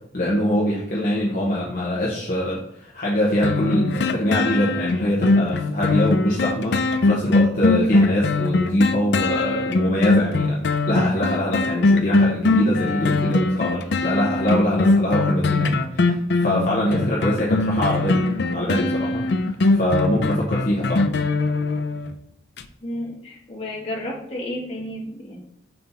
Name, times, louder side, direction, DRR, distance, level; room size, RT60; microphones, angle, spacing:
voice 1, 0.1-21.1, left 1 dB, 50° left, -5 dB, 1.1 m, -23 dB
sound 1, 3.4-22.1 22.6-22.7, left 3 dB, 70° left, 0.5 m, -21 dB
voice 2, 22.8-25.4, left 1 dB, 35° left, -4 dB, 1.8 m, -32 dB
5.4 x 4.3 x 4.0 m, 0.80 s
head